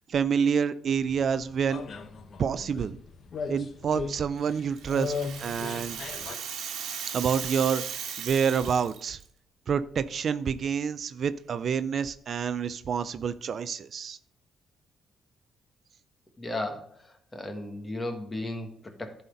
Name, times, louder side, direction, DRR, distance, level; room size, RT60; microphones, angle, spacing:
voice 1, 0.1-1.8 2.4-3.0 3.5-5.1 5.4-6.0 7.1-7.8 8.2-9.2 9.7-14.2, right 7 dB, 55° right, 14 dB, 0.4 m, -28 dB
sound 1, 0.9-6.4, left 5 dB, 55° left, 0.8 m, -38 dB
Rattle (instrument), 4.5-9.2, right 8 dB, 80° right, 1.3 m, -37 dB
voice 2, 16.4-19.2, left 1 dB, 20° left, 5 dB, 1.6 m, -35 dB
11.0 x 4.2 x 5.2 m, 0.63 s
cardioid pair, 90°, 0 cm